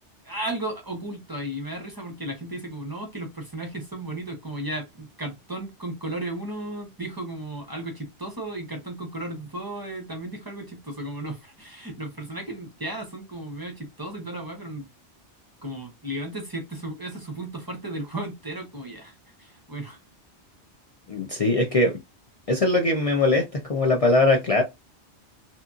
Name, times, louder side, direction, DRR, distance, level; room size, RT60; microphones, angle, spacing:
voice 1, 0.2-14.8 15.6-20.0, right 1 dB, 25° right, 0.6 m, -34 dB
voice 2, 21.1-22.0 22.5-24.6, left 2 dB, 45° left, 0.5 m, -21 dB
2.9 x 2.6 x 2.3 m
omnidirectional pair, 1.1 m